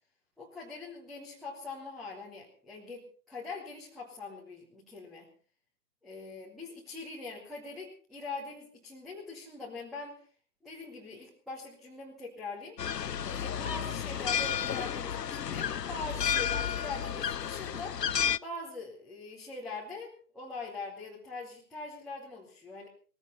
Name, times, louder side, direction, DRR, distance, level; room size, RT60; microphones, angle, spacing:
voice 1, 0.4-5.3 6.0-10.2 10.6-12.8 13.2-18.0 18.4-22.9, left 3 dB, ahead, -8 dB, 0.8 m, -42 dB
sound 1, 12.8-18.4, left 8 dB, 75° left, 0.7 m, -32 dB
20.0 x 15.5 x 4.1 m, 0.40 s
figure-of-eight pair, 140°, 50 cm